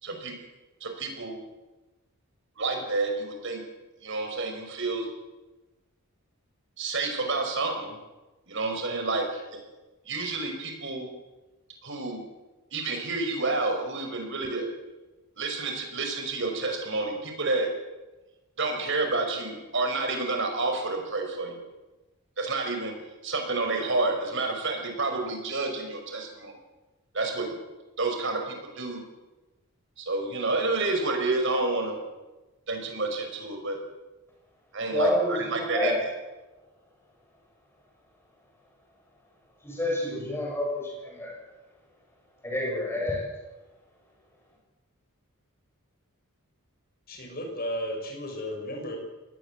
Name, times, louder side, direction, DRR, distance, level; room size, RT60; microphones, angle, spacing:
voice 1, 0.0-0.3 0.8-1.4 2.6-3.6 4.0-5.1 6.8-8.0 8.5-9.6 10.1-11.1 11.8-12.2 12.7-14.7 15.4-17.7 18.6-21.6 22.4-22.9 23.2-26.5 27.1-27.5 28.0-29.0 30.0-32.0 32.7-33.8 34.7-36.0, right 3 dB, 55° right, 5.5 m, -29 dB
voice 2, 34.9-36.1 39.6-41.4 42.4-43.3, left 1 dB, 10° left, 7.0 m, -28 dB
voice 3, 47.1-49.0, equal, 40° left, 6.4 m, -34 dB
25.0 x 19.0 x 7.7 m
head